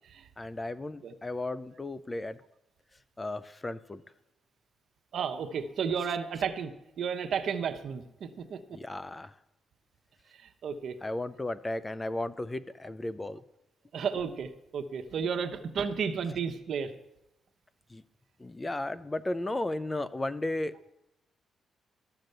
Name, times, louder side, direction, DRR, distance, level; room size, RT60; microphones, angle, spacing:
voice 1, 0.4-2.4 3.2-4.0 8.7-9.4 11.0-13.4 17.9-18.0 18.4-20.8, left 2 dB, 20° left, 15 dB, 0.4 m, -34 dB
voice 2, 5.1-6.7 7.0-8.8 10.4-11.0 13.9-17.0, right 6 dB, 65° right, 7 dB, 0.9 m, -33 dB
13.0 x 6.0 x 6.7 m, 0.89 s
cardioid pair, 100°, 0 cm